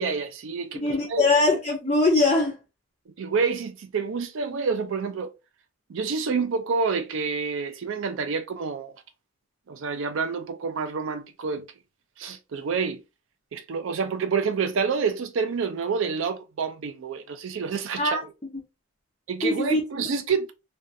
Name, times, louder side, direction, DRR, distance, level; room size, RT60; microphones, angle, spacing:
voice 1, 0.0-0.8 1.1-1.3 3.1-5.3 5.9-8.9 9.7-11.7 12.2-13.0 13.5-18.3 19.3-20.5, right 5 dB, 60° right, 0.4 m, -28 dB
voice 2, 0.7-2.6 18.0-18.2 19.4-19.8, left 2 dB, 25° left, 0.5 m, -22 dB
2.5 x 2.2 x 2.5 m
head